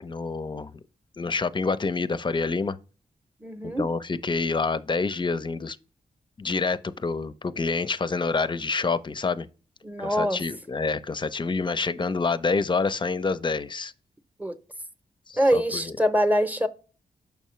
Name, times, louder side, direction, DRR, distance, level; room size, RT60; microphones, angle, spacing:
voice 1, 0.0-0.7 1.2-2.8 3.6-5.8 6.4-9.5 10.0-13.9 15.3-16.0, left 4 dB, 30° left, 0.5 m, -27 dB
voice 2, 3.4-3.8 9.8-10.4 14.4-14.6 15.4-16.7, equal, 10° right, 0.7 m, -24 dB
7.0 x 5.6 x 3.1 m
cardioid pair, 80°, 16 cm